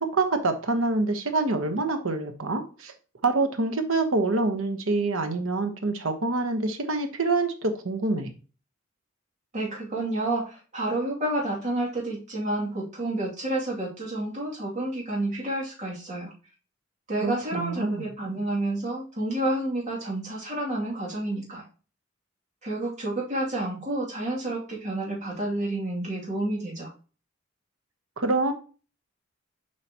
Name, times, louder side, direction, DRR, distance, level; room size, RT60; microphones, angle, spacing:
voice 1, 0.0-2.9 3.2-8.3 17.2-18.1 28.2-28.5, right 3 dB, 90° right, 7 dB, 1.1 m, -26 dB
voice 2, 9.5-16.3 17.1-21.6 22.6-26.9, right 1 dB, 40° right, -4 dB, 2.5 m, -30 dB
7.5 x 4.9 x 2.9 m, 0.36 s
head